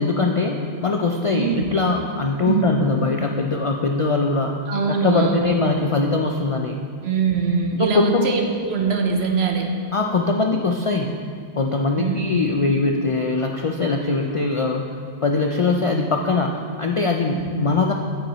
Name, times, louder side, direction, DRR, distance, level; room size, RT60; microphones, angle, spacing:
voice 1, 0.0-4.6 4.9-6.8 7.8-8.3 9.9-11.2 11.6-17.9, left 3 dB, 60° left, 2 dB, 0.3 m, -22 dB
voice 2, 1.3-1.7 2.4-2.7 4.7-5.6 7.0-9.7 12.0-12.4 17.3-17.5, right 5 dB, 75° right, 3 dB, 1.1 m, -22 dB
9.0 x 8.6 x 3.0 m, 2.2 s
omnidirectional pair, 1.1 m